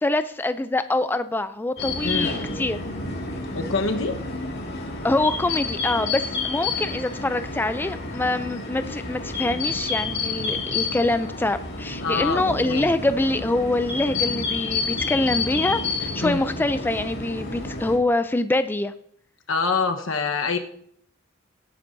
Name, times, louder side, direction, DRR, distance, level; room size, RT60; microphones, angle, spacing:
voice 1, 0.0-2.8 5.0-18.9, left 2 dB, 10° left, 11 dB, 0.3 m, -25 dB
sound 1, 1.8-18.0, left 4 dB, 55° left, 2.1 m, -29 dB
voice 2, 3.5-4.1 12.0-12.9 16.2-16.5 19.5-20.6, left 4 dB, 75° left, 6 dB, 1.1 m, -25 dB
17.5 x 9.1 x 2.6 m, 0.65 s
head